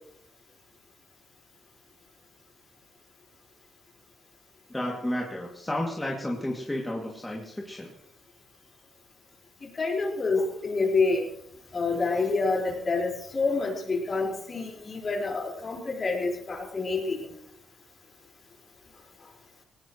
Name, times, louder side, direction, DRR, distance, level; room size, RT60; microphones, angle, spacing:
voice 1, 4.7-7.9, left 1 dB, 10° left, -2 dB, 2.7 m, -32 dB
voice 2, 9.7-11.3 11.7-17.3, left 3 dB, 35° left, 0 dB, 5.2 m, -27 dB
19.0 x 18.5 x 3.2 m, 0.71 s
cardioid pair, 90°, 0 cm